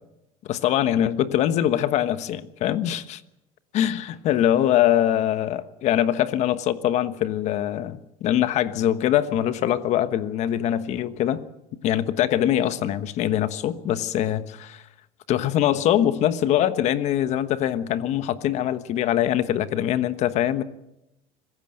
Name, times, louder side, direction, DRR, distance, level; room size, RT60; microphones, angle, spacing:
voice 1, 0.5-3.2 3.7-11.4 11.8-14.8 15.3-20.6, left 11 dB, 50° left, 12 dB, 1.3 m, -23 dB
25.5 x 15.5 x 7.8 m, 0.88 s
cardioid pair, 140°, 15 cm